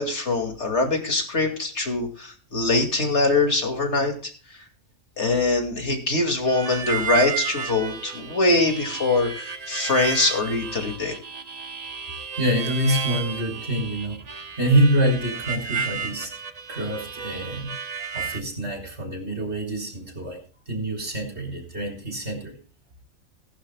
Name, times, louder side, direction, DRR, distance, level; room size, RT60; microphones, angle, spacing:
voice 1, 0.0-4.1 5.2-9.3 9.7-11.1, left 3 dB, 60° left, 4 dB, 2.8 m, -23 dB
Harmonica, 6.5-18.4, right 6 dB, 35° right, 0.9 m, -32 dB
voice 2, 12.4-16.3 16.7-17.8 18.1-20.4 20.7-22.6, right 1 dB, 50° right, 1 dB, 4.1 m, -26 dB
19.5 x 11.5 x 2.3 m, 0.40 s
omnidirectional pair, 1.4 m